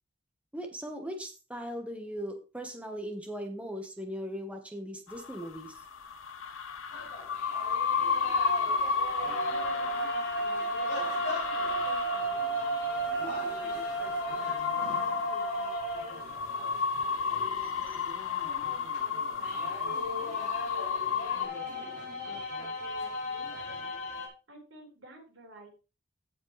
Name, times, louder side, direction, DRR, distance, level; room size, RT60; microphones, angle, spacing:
voice 1, 0.5-5.8, equal, 5° right, 4 dB, 1.2 m, -39 dB
sound 1, 5.1-21.5, left 5 dB, 90° left, 0.8 m, -33 dB
sound 2, 6.9-24.3, right 1 dB, 40° left, 4.9 m, -35 dB
voice 2, 9.2-11.5 11.7-12.6 13.0-15.8 16.1-17.9 18.6-23.7 24.5-25.7, right 1 dB, 80° right, 0 dB, 4.3 m, -52 dB
15.5 x 5.3 x 3.2 m, 0.32 s
head